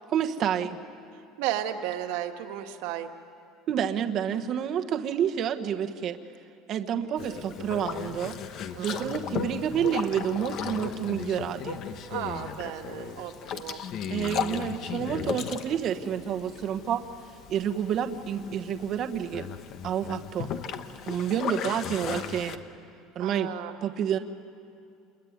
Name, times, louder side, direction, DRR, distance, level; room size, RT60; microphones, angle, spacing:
voice 1, 0.1-0.8 3.7-6.2 6.7-8.3 8.8-11.8 14.1-17.0 17.5-19.5 19.8-20.5 21.1-22.6 23.1-23.5 23.8-24.2, right 9 dB, 35° right, 6 dB, 1.2 m, -29 dB
voice 2, 1.1-3.1 7.3-7.4 8.7-9.1 12.1-13.9 23.2-23.7, right 11 dB, 70° right, 5 dB, 1.8 m, -34 dB
Boat Water vehicle, 7.2-22.6, left 7 dB, 40° left, 1.1 m, -36 dB
28.0 x 22.0 x 9.5 m, 2.5 s
cardioid pair, 170°, 0 cm